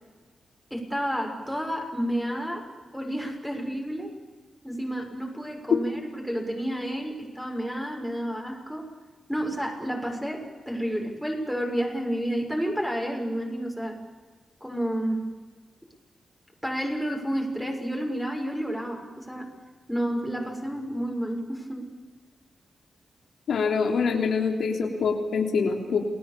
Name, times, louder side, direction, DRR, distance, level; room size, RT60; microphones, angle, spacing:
voice 1, 0.7-2.6 2.9-4.1 4.6-8.9 9.3-14.0 14.6-15.3 16.6-19.5 19.9-21.9, equal, ahead, 2 dB, 6.8 m, -30 dB
voice 2, 23.5-26.0, left 5 dB, 90° left, 1 dB, 3.4 m, -25 dB
29.0 x 20.0 x 7.0 m, 1.3 s
wide cardioid pair, 95°, 0 cm